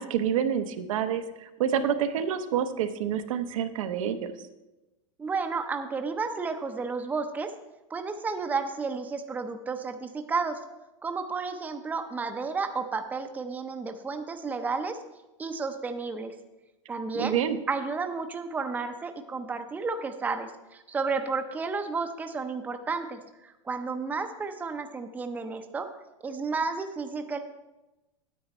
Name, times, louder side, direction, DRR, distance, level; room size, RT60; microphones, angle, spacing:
voice 1, 0.0-4.3 17.1-17.6, right 8 dB, 75° right, 8 dB, 0.8 m, -28 dB
voice 2, 5.2-7.5 7.9-10.6 11.0-15.0 15.4-16.3 16.9-17.4 17.7-25.9 26.2-27.4, right 4 dB, 10° right, 6 dB, 0.5 m, -32 dB
9.4 x 7.9 x 4.3 m, 1.0 s
supercardioid pair, 135°, 17 cm